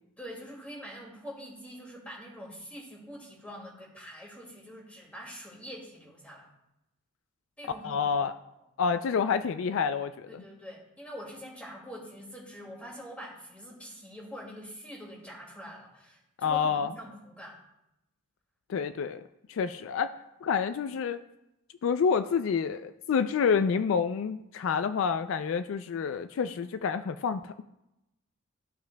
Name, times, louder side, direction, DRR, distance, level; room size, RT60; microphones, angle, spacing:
voice 1, 0.2-6.5 7.6-8.1 10.3-17.6, equal, 5° left, -3 dB, 2.1 m, -45 dB
voice 2, 7.8-8.3 8.8-10.4 16.4-16.9 18.7-19.2 19.5-20.1 20.4-21.2 21.8-27.5, left 6 dB, 70° left, 11 dB, 0.3 m, -28 dB
14.5 x 5.8 x 2.2 m, 0.89 s
head